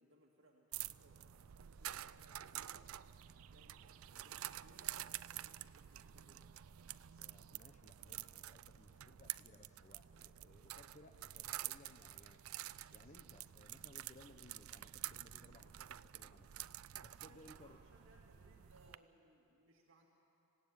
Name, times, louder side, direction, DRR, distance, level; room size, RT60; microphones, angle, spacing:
voice 1, 0.0-6.7 17.2-20.1, right 1 dB, 65° right, -2 dB, 2.2 m, -68 dB
sound 1, 0.7-18.9, right 13 dB, 85° right, 0.5 m, -49 dB
voice 2, 7.2-12.4 12.9-16.7 17.0-17.8, left 1 dB, 35° left, 6 dB, 1.0 m, -62 dB
26.5 x 17.5 x 9.0 m, 2.7 s
head